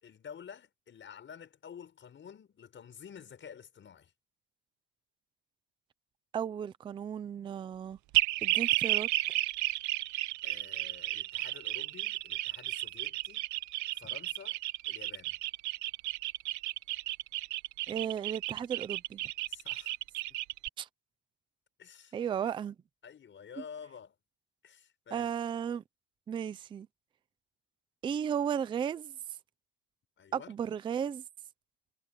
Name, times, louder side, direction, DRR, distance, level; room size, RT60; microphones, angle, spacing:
voice 1, 0.0-4.1 10.4-13.5 13.9-14.6 14.9-15.3 19.5-19.9 21.8-22.1 22.4-22.5 23.0-24.1 24.6-25.3 30.2-30.5, left 7 dB, 25° left, 6.2 m, -50 dB
voice 2, 6.3-8.0 8.4-9.1 17.9-19.2 20.8-20.9 22.1-22.8 25.1-25.8 26.3-26.9 28.0-29.1 30.3-31.2, right 8 dB, 10° right, 0.4 m, -34 dB
sound 1, 8.1-20.7, right 17 dB, 40° right, 0.8 m, -33 dB
cardioid pair, 155°, 48 cm